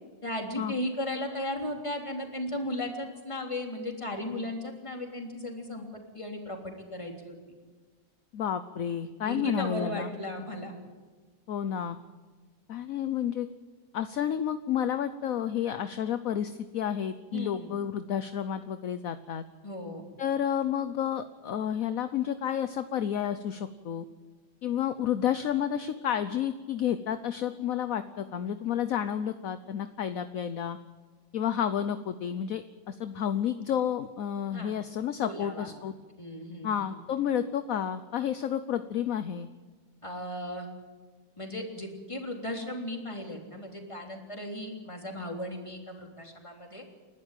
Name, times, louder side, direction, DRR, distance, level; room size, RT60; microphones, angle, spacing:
voice 1, 0.2-5.9 6.1-7.3 9.2-10.7 17.3-17.7 19.6-20.0 34.5-34.7 35.2-35.7 36.2-36.9 40.0-40.7 41.4-46.8, left 1 dB, 15° left, 2 dB, 3.4 m, -36 dB
voice 2, 8.3-10.1 11.5-12.0 12.7-13.5 13.9-19.4 20.2-24.1 24.6-30.8 31.3-35.9 36.6-39.5, left 9 dB, 60° left, 11 dB, 1.0 m, -30 dB
29.5 x 12.0 x 9.2 m, 1.4 s
omnidirectional pair, 2.0 m